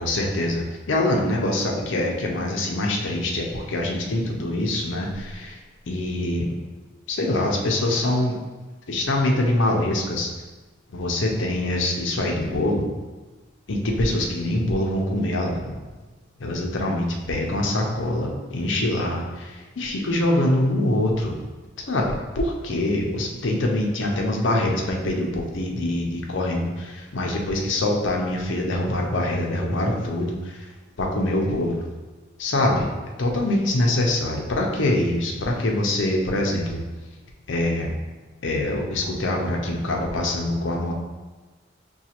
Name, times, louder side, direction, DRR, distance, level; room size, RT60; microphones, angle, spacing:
voice 1, 0.0-5.6 5.8-6.6 7.1-8.4 8.9-10.3 10.9-12.9 13.7-15.7 16.4-21.4 21.8-30.6 31.0-31.8 32.4-32.9 33.2-36.8 37.5-37.9 38.4-40.9, left 1 dB, 75° left, 0 dB, 0.6 m, -24 dB
6.0 x 2.3 x 2.9 m, 1.2 s
head